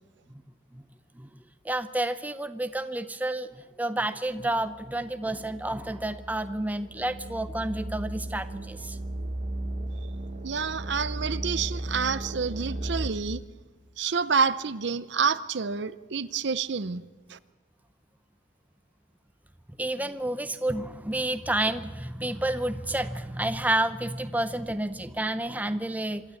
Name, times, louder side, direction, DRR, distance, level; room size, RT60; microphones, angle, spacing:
voice 1, 1.6-9.0 19.8-26.2, right 1 dB, 10° right, 11 dB, 0.6 m, -30 dB
sound 1, 4.5-13.1, right 1 dB, 40° right, 1.4 m, -36 dB
voice 2, 10.4-13.4 14.0-17.0 17.3-17.4, right 5 dB, 60° right, 16 dB, 0.6 m, -28 dB
25.5 x 12.5 x 8.5 m, 1.3 s
head